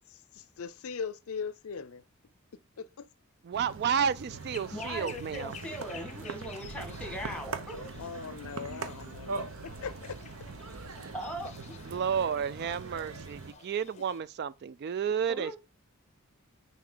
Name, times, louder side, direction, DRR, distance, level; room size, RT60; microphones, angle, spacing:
voice 1, 0.1-2.0 2.8-3.1 7.5-10.2 10.8-11.1 14.0-14.1, left 6 dB, 70° left, 0.5 m, -40 dB
voice 2, 3.5-5.5 11.9-15.6, right 7 dB, 45° right, 0.3 m, -31 dB
sound 1, 3.5-13.5, right 4 dB, 70° right, 0.8 m, -42 dB
sound 2, 4.3-14.2, left 6 dB, 30° left, 0.6 m, -52 dB
voice 3, 4.7-8.1 11.1-11.7 15.3-15.6, equal, 5° left, 1.6 m, -40 dB
9.3 x 3.7 x 3.8 m
head